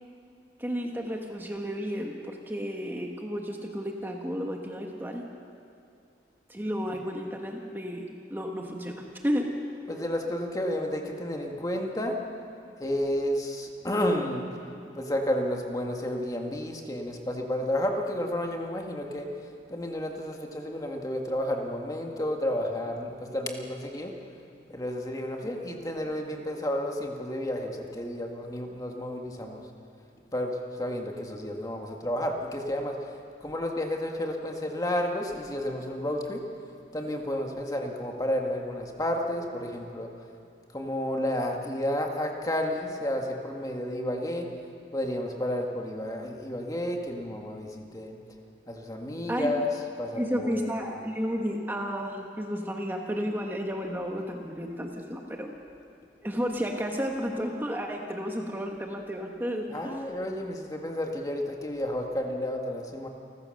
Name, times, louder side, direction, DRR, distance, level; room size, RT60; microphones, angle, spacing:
voice 1, 0.6-5.2 6.5-9.5 49.3-49.5 50.1-55.5 56.2-59.9, equal, 10° right, 1 dB, 1.4 m, -32 dB
voice 2, 9.9-12.2 12.8-14.4 15.0-19.3 19.7-24.1 24.7-29.6 30.3-33.0 33.4-36.4 36.9-40.1 40.7-44.5 44.9-48.2 48.7-49.7 50.0-50.6 59.7-63.1, left 1 dB, 20° left, 1 dB, 1.8 m, -31 dB
29.0 x 15.0 x 6.6 m, 2.5 s
head